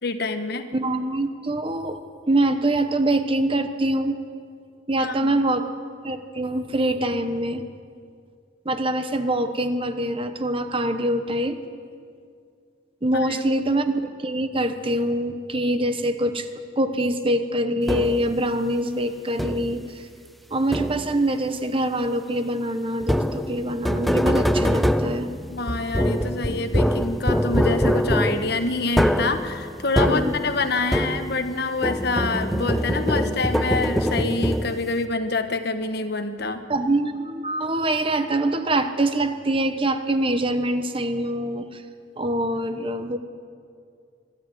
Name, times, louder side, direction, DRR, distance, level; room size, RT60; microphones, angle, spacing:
voice 1, 0.0-0.7 5.0-5.3 13.3-13.4 25.5-36.6, left 3 dB, 55° left, 8 dB, 1.3 m, -26 dB
voice 2, 0.7-2.0 2.3-4.2 4.9-5.7 6.0-7.6 8.6-11.6 13.0-16.5 16.8-20.0 20.5-25.3 30.1-30.3 36.7-41.8 42.2-43.2, right 1 dB, 30° right, 9 dB, 1.0 m, -24 dB
sound 1, 17.9-18.4 19.4-19.9 20.7-21.3 23.0-31.5 31.8-35.0, equal, ahead, 0.6 m, -24 dB
23.5 x 13.0 x 9.3 m, 2.3 s
head